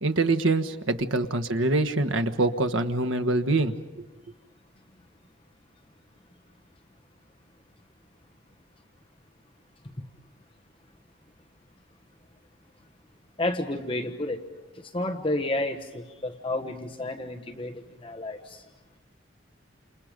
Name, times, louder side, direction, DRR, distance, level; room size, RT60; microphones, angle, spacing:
voice 1, 0.0-4.0, right 2 dB, 90° right, 9 dB, 1.4 m, -25 dB
voice 2, 13.4-14.4 14.9-18.6, left 2 dB, 25° left, 3 dB, 1.3 m, -31 dB
29.5 x 28.0 x 5.2 m, 1.1 s
head